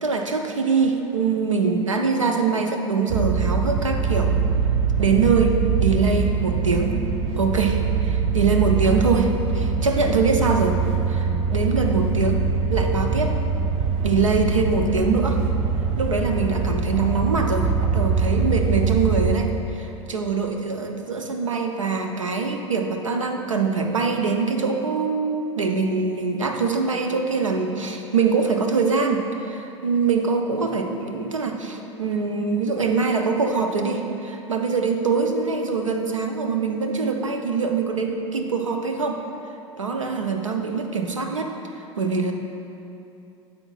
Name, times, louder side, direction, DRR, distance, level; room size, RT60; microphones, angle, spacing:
voice 1, 0.0-4.4 5.0-7.0 7.4-10.8 11.1-12.4 12.7-13.4 14.0-15.4 16.0-39.2 39.8-41.6 42.0-42.3, right 4 dB, 85° right, 4 dB, 0.6 m, -23 dB
sound 1, 3.1-19.3, right 5 dB, 45° right, 0.5 m, -23 dB
9.6 x 7.2 x 2.4 m, 2.8 s
figure-of-eight pair, 75°, 16 cm